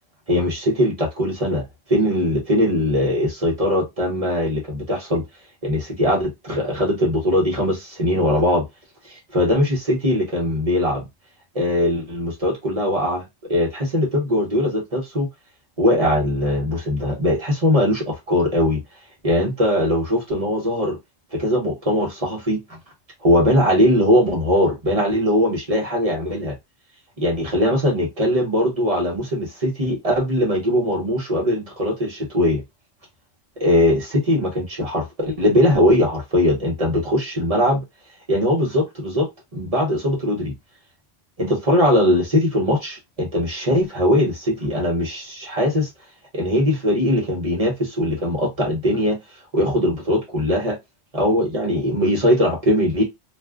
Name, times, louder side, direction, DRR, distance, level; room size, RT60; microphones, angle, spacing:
voice 1, 0.3-1.6 1.9-5.2 5.6-8.6 9.0-11.1 11.5-15.3 15.8-18.8 19.2-21.0 21.3-22.8 23.2-26.6 27.2-32.6 33.6-37.8 38.3-40.5 41.4-45.9 46.3-49.2 49.5-50.8 51.1-53.0, left 1 dB, 35° right, 0.9 m, -20 dB
2.5 x 2.2 x 3.5 m
omnidirectional pair, 1.2 m